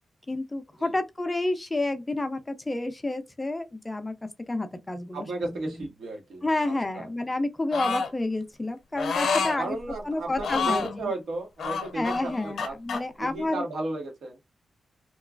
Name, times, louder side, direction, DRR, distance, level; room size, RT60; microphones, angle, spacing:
voice 1, 0.3-5.9 6.4-9.8 10.0-11.1 11.9-13.6, left 2 dB, 15° left, 0.4 m, -30 dB
voice 2, 5.1-6.5 6.9-7.1 9.6-12.7 13.2-14.4, right 2 dB, 75° right, 1.2 m, -34 dB
sound 1, 7.7-8.1 9.0-9.6 10.4-10.9 11.6-13.0, left 5 dB, 85° left, 0.7 m, -28 dB
3.0 x 2.3 x 2.3 m
wide cardioid pair, 150°, 0 cm